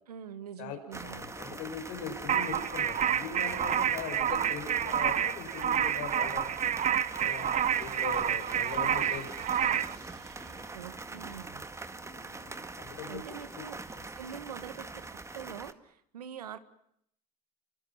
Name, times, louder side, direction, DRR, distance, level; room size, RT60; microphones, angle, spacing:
voice 1, 0.1-1.3 10.7-11.7 13.1-16.6, right 9 dB, 90° right, 12 dB, 1.7 m, -44 dB
voice 2, 0.6-6.8 7.2-9.8 12.4-13.4 13.9-14.1, left 8 dB, 70° left, 5 dB, 6.8 m, -41 dB
sound 1, 0.9-15.7, right 3 dB, 15° right, 2.0 m, -43 dB
sound 2, 2.3-10.0, right 9 dB, 40° right, 1.2 m, -29 dB
sound 3, 5.2-13.5, right 5 dB, 70° right, 6.2 m, -55 dB
29.5 x 25.5 x 5.8 m, 0.72 s
hypercardioid pair, 75°, 19 cm